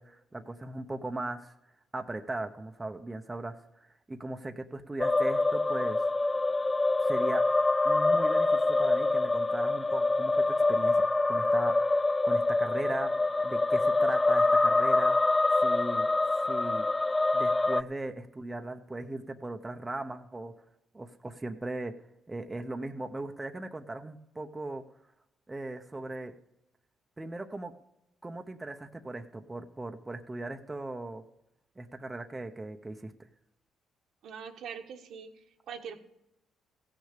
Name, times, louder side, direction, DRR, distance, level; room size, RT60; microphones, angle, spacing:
voice 1, 0.0-1.5 1.9-6.0 7.0-7.5 7.8-11.0 11.3-15.2 15.6-16.1 16.5-16.9 17.3-20.5 20.9-21.9 22.3-24.8 25.5-26.3 27.2-27.7 28.2-31.2 31.8-33.1, right 2 dB, 15° right, 5 dB, 0.9 m, -38 dB
sound 1, 5.0-17.8, left 2 dB, 20° left, 0.4 m, -25 dB
voice 2, 34.2-36.0, right 7 dB, 75° right, 3 dB, 1.5 m, -43 dB
16.0 x 6.5 x 6.8 m, 0.86 s
cardioid pair, 90°, 0 cm